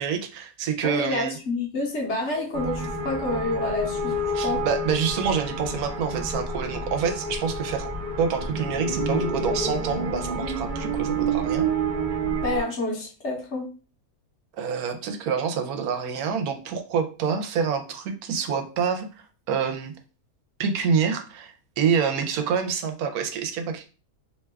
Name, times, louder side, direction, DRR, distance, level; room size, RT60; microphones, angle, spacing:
voice 1, 0.0-1.3 4.3-7.9 8.2-11.7 14.6-19.9 20.6-23.8, right 6 dB, 85° right, 7 dB, 1.1 m, -27 dB
voice 2, 0.8-4.1 4.4-4.6 12.4-13.7, left 2 dB, 55° left, 0 dB, 1.0 m, -28 dB
sound 1, 2.5-12.6, right 2 dB, 45° right, 0.6 m, -28 dB
2.9 x 2.2 x 3.2 m, 0.35 s
omnidirectional pair, 1.5 m